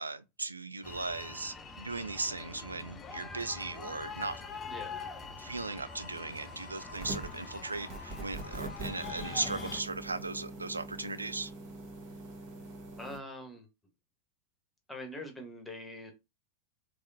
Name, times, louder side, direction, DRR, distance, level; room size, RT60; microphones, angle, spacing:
voice 1, 0.0-4.4 5.4-11.5, right 3 dB, 80° right, 0.4 m, -37 dB
sound 1, 0.8-9.8, left 4 dB, 20° left, 0.6 m, -44 dB
voice 2, 4.7-5.1 13.0-13.7 14.9-16.1, left 1 dB, 5° left, 1.2 m, -43 dB
Harmonica, 5.8-9.9, left 1 dB, 65° right, 1.1 m, -50 dB
sound 2, 6.9-7.4 7.9-13.2, right 2 dB, 45° right, 1.4 m, -43 dB
3.4 x 3.3 x 2.7 m
figure-of-eight pair, 90°, 0 cm